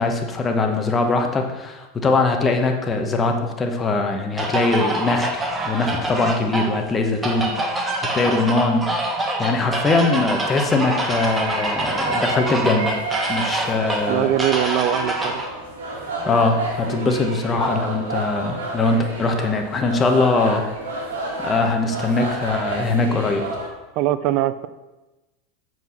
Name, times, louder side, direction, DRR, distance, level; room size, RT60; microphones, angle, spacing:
voice 1, 0.0-8.9 9.4-14.3 16.2-20.6 21.4-23.4, left 3 dB, 25° left, 4 dB, 1.2 m, -21 dB
sound 1, 4.4-15.5, right 2 dB, 20° right, 1.5 m, -26 dB
sound 2, 11.0-23.7, right 2 dB, 90° right, 2.1 m, -30 dB
voice 2, 14.1-15.4 24.0-24.7, right 13 dB, 55° right, 14 dB, 0.5 m, -21 dB
7.9 x 4.7 x 5.9 m, 1.1 s
hypercardioid pair, 100°, 0 cm